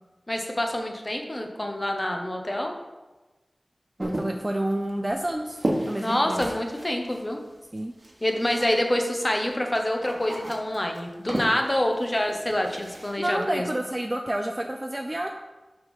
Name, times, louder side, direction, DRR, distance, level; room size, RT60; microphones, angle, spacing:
voice 1, 0.3-2.7 6.0-7.4 8.2-13.7, left 1 dB, 30° left, 3 dB, 1.1 m, -26 dB
voice 2, 4.0-5.6 5.8-6.4 7.7-7.9 13.2-15.3, right 1 dB, 25° right, 3 dB, 0.5 m, -29 dB
sound 1, 4.0-8.9 9.2-13.2, right 1 dB, 45° right, 1.3 m, -34 dB
5.6 x 5.5 x 5.6 m, 1.1 s
wide cardioid pair, 55°, 0 cm